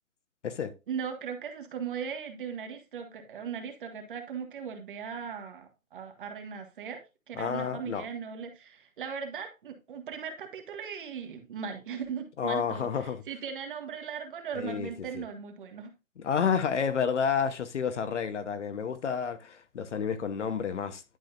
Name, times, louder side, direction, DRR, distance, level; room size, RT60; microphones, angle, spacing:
voice 1, 0.9-15.9, right 7 dB, 40° right, 1.7 m, -38 dB
voice 2, 7.4-8.0 12.4-13.2 14.6-14.9 15.1-15.2 16.2-21.0, left 6 dB, 60° left, 1.1 m, -30 dB
11.5 x 5.0 x 2.6 m
hypercardioid pair, 160°, 41 cm